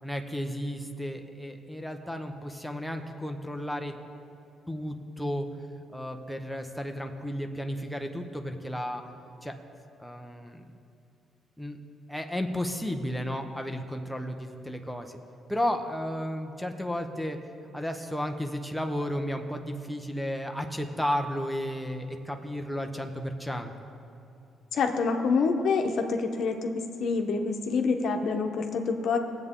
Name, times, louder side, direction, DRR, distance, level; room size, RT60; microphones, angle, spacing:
voice 1, 0.0-3.9 4.7-5.5 5.9-9.0 9.4-9.6 10.0-10.7 11.6-11.8 12.1-15.2 15.5-17.4 17.7-23.7, equal, ahead, 4 dB, 0.9 m, -33 dB
voice 2, 24.7-26.7 27.0-29.2, left 4 dB, 65° left, 4 dB, 1.0 m, -26 dB
18.0 x 8.1 x 3.7 m, 2.6 s
cardioid pair, 90°, 0 cm